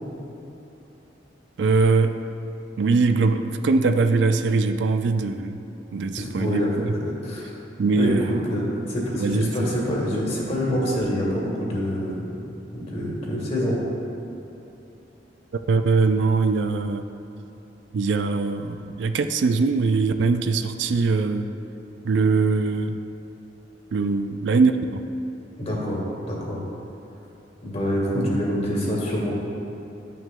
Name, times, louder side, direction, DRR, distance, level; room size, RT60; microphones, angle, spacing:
voice 1, 1.6-2.2 2.8-5.6 5.9-6.9 7.8-8.3 9.2-9.7 15.7-17.0 17.9-21.5 22.0-23.0 23.9-25.0, right 4 dB, 70° right, 8 dB, 0.3 m, -22 dB
voice 2, 6.2-7.5 7.8-13.8 25.6-26.6 27.6-29.3, equal, 35° left, -4 dB, 1.5 m, -26 dB
11.0 x 6.0 x 2.2 m, 3.0 s
head